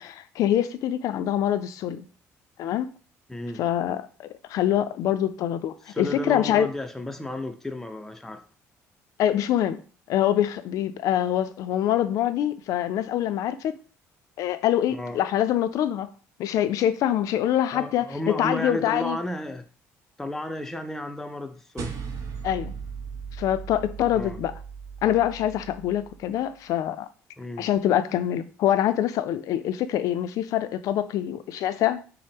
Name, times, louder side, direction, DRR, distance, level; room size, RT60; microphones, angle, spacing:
voice 1, 0.0-2.1 2.6-2.9 3.6-6.7 9.2-9.8 10.1-13.8 14.4-16.1 16.4-19.2 22.4-22.7 23.4-24.5 25.0-27.1 27.6-32.0, left 11 dB, 70° left, 0.4 m, -25 dB
voice 2, 3.3-3.6 5.9-8.4 14.9-15.2 17.7-19.6 20.2-21.9 24.1-24.4 27.4-27.7, left 1 dB, 5° left, 0.5 m, -33 dB
sound 1, 21.8-26.4, right 6 dB, 60° right, 0.7 m, -38 dB
5.4 x 2.0 x 3.5 m
cardioid pair, 100°, 6 cm